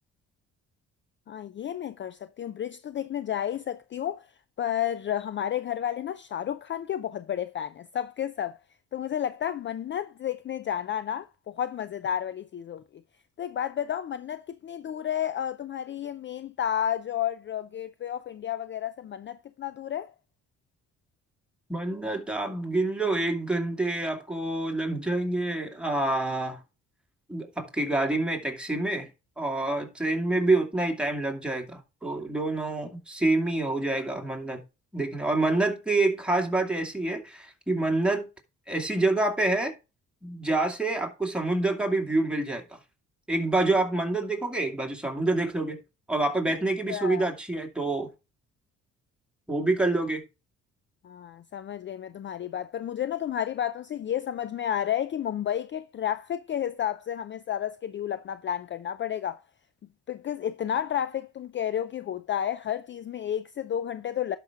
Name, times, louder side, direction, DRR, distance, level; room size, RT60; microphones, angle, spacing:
voice 1, 1.3-4.3 4.6-8.6 8.9-12.8 13.4-20.1 46.9-47.3 51.0-59.4 60.1-64.4, left 10 dB, 40° left, 0.4 m, -31 dB
voice 2, 21.7-26.6 27.3-29.1 29.4-34.6 34.9-38.3 38.7-39.7 40.2-42.8 43.3-45.8 46.1-48.1 49.5-50.2, right 2 dB, 5° right, 2.3 m, -27 dB
11.5 x 5.9 x 3.6 m
cardioid pair, 90°, 30 cm